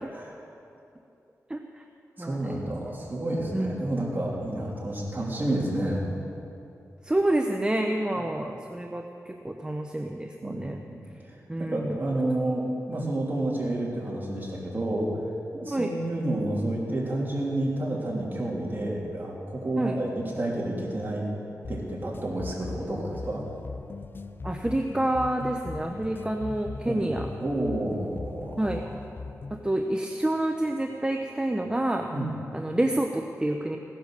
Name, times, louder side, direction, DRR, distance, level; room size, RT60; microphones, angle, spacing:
voice 1, 2.2-6.0 10.4-11.0 11.6-15.1 15.5-21.3 21.7-23.4 26.8-28.8 32.1-32.3, right 1 dB, 35° right, -4 dB, 3.3 m, -30 dB
voice 2, 7.0-10.8 11.5-12.0 15.7-15.9 19.8-20.0 24.4-27.3 28.6-28.8 29.6-32.1 32.5-33.8, right 1 dB, 15° right, 3 dB, 0.7 m, -28 dB
sound 1, 21.6-29.7, left 3 dB, 40° left, 0.5 m, -39 dB
16.5 x 10.0 x 6.6 m, 2.7 s
wide cardioid pair, 95°, 6 cm